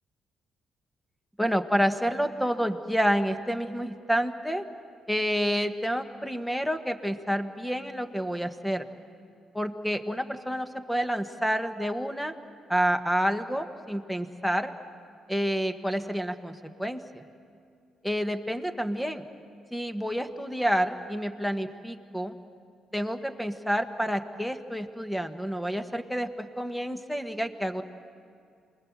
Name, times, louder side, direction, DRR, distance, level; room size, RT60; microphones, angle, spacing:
voice 1, 1.4-4.6 5.1-8.9 9.5-12.3 12.7-14.7 15.3-17.2 18.0-19.2 19.7-22.3 22.9-27.8, equal, ahead, 8 dB, 1.4 m, -29 dB
27.5 x 20.5 x 7.3 m, 2.3 s
cardioid pair, 90°, 0 cm